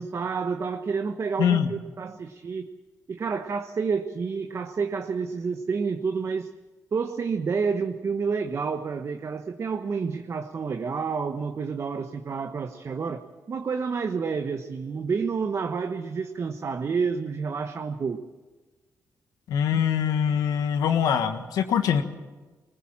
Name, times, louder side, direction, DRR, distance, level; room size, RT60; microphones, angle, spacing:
voice 1, 0.0-2.7 3.1-6.5 6.9-13.2 13.5-18.2 19.7-19.8, right 5 dB, 50° right, 6 dB, 1.1 m, -29 dB
voice 2, 1.4-1.7 19.5-22.0, left 8 dB, 90° left, 7 dB, 1.5 m, -23 dB
20.0 x 20.0 x 7.4 m, 1.2 s
cardioid pair, 75°, 6 cm